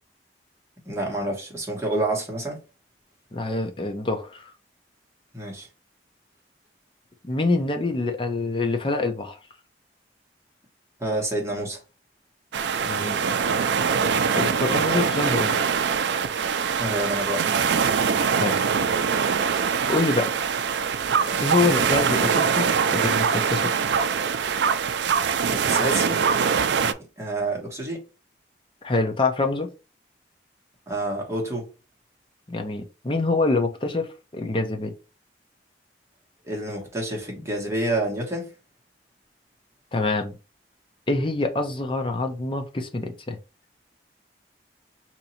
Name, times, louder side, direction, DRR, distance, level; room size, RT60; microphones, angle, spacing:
voice 1, 0.9-2.6 5.3-5.7 11.0-11.8 16.8-17.4 25.4-26.2 27.2-28.0 30.9-31.7 36.4-38.5, right 1 dB, 15° right, 1.2 m, -28 dB
voice 2, 3.3-4.5 7.2-9.4 12.8-13.3 14.4-15.5 18.3-18.6 19.9-20.3 21.4-23.7 28.8-29.7 32.5-34.9 39.9-40.4 41.1-43.4, left 3 dB, 30° left, 0.6 m, -25 dB
sound 1, 12.5-26.9, right 6 dB, 80° right, 0.4 m, -23 dB
2.9 x 2.7 x 4.2 m
head